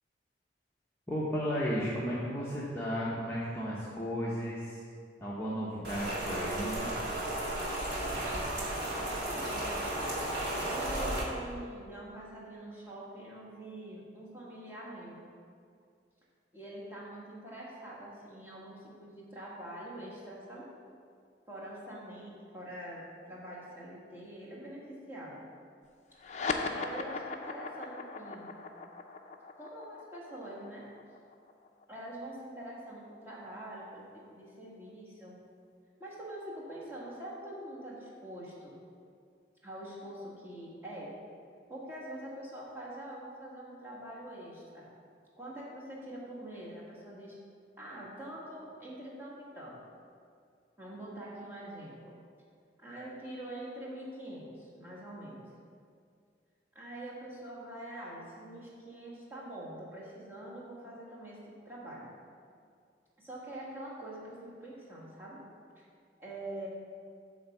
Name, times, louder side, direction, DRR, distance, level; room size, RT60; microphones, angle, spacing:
voice 1, 1.1-4.8 5.2-6.9, equal, 10° left, -8 dB, 0.8 m, -34 dB
Rain, 5.8-11.2, right 1 dB, 60° right, 1.9 m, -34 dB
voice 2, 8.6-9.8 10.6-15.2 16.5-20.7 21.5-25.4 26.6-28.5 29.6-30.9 31.9-35.3 36.0-38.8 39.6-41.1 41.7-44.8 45.4-47.4 47.8-49.8 50.8-52.1 52.8-55.4 56.7-62.1 63.2-65.4 65.8-65.9 66.2-66.7, right 1 dB, 10° right, -7 dB, 1.6 m, -44 dB
sound 1, 26.2-33.0, left 4 dB, 40° left, 0.5 m, -39 dB
8.6 x 3.5 x 6.6 m, 2.3 s
head